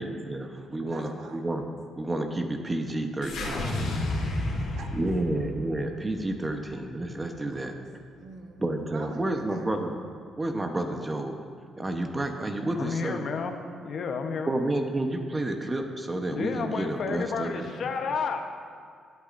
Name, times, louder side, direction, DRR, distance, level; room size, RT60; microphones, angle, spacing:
voice 1, 0.0-1.6 2.0-4.0 4.9-7.7 8.6-9.9 10.4-11.4 11.8-13.2 14.5-17.5, right 1 dB, 20° right, 4 dB, 1.0 m, -30 dB
voice 2, 0.9-1.4 3.3-5.2 6.4-6.6 7.3-7.8 8.2-9.8, right 3 dB, 70° right, 3 dB, 1.3 m, -45 dB
sound 1, 3.2-7.5, left 2 dB, 80° left, 1.6 m, -32 dB
voice 3, 12.8-14.5 16.3-18.6, left 5 dB, 60° left, 5 dB, 0.9 m, -31 dB
18.5 x 8.2 x 2.6 m, 2.1 s
cardioid pair, 90°, 0 cm